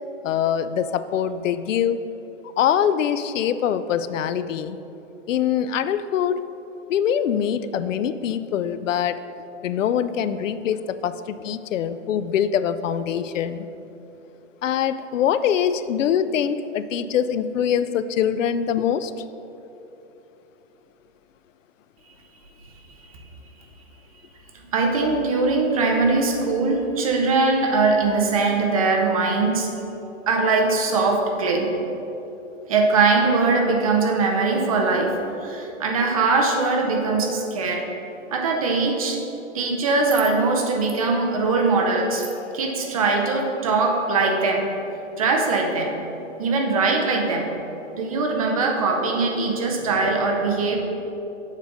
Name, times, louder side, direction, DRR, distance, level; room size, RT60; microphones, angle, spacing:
voice 1, 0.2-2.0 2.6-4.8 5.3-6.4 6.9-9.2 9.6-13.7 14.6-19.1, left 9 dB, 85° left, 13 dB, 0.5 m, -23 dB
voice 2, 24.7-29.7 30.3-31.7 32.7-37.9 38.3-39.2 39.5-44.7 45.1-46.0 46.4-47.5 47.9-50.8, right 3 dB, 30° right, 2 dB, 0.6 m, -21 dB
7.3 x 3.9 x 6.4 m, 3.0 s
hypercardioid pair, 170°, 37 cm